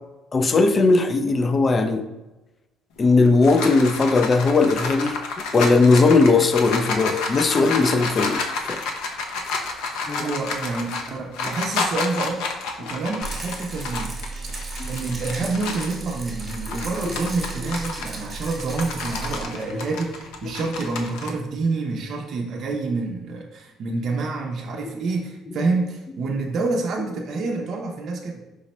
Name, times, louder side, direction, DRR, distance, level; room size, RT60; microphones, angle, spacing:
voice 1, 0.3-2.1 3.0-5.2 5.5-8.4 8.7-8.8 10.1-10.3 14.8-14.9 16.7-16.8 17.0-17.2 17.6-17.7 20.4-20.5, left 3 dB, 25° left, 8 dB, 0.3 m, -18 dB
sound 1, 3.0-16.0 16.4-21.3, left 4 dB, 85° left, 0.5 m, -30 dB
voice 2, 10.2-12.4 12.8-14.2 14.9-28.4, right 3 dB, 45° right, -1 dB, 0.5 m, -27 dB
Rattle, 13.2-19.4, right 3 dB, 20° right, 1.0 m, -34 dB
4.7 x 2.1 x 4.1 m, 1.0 s
cardioid pair, 135°, 0 cm